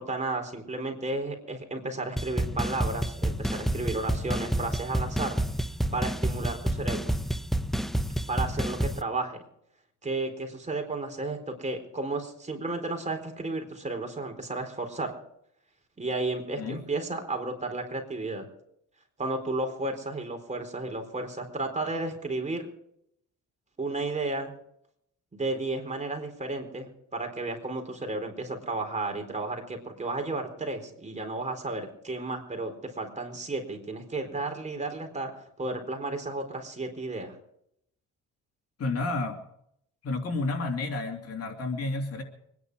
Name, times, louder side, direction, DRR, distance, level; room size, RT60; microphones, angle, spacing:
voice 1, 0.0-5.4 5.9-7.1 8.3-9.4 10.0-15.2 16.0-18.4 19.2-22.7 23.8-24.5 25.3-35.3 35.6-37.3, right 2 dB, 25° right, 4 dB, 4.2 m, -33 dB
sound 1, 2.2-9.0, right 1 dB, ahead, 0.8 m, -29 dB
voice 2, 38.8-39.4 40.0-42.2, left 3 dB, 55° left, 3 dB, 2.8 m, -30 dB
25.0 x 10.5 x 4.8 m, 0.73 s
cardioid pair, 90°, 30 cm